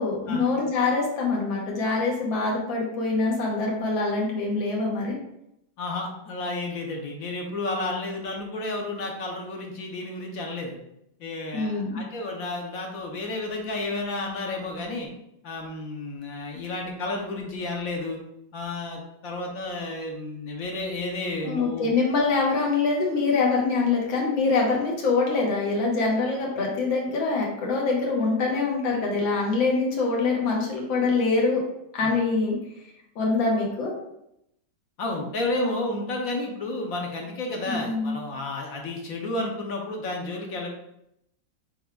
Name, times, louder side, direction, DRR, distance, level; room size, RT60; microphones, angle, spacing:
voice 1, 0.0-5.2 11.5-12.0 21.4-31.6 31.9-32.6 33.1-33.9 37.7-38.1, left 3 dB, 80° left, -2 dB, 1.8 m, -24 dB
voice 2, 5.8-10.8 11.2-15.1 15.4-18.2 18.5-21.9 32.0-32.1 35.0-40.7, left 2 dB, 60° left, 1 dB, 0.9 m, -31 dB
6.0 x 3.8 x 2.3 m, 0.81 s
omnidirectional pair, 2.1 m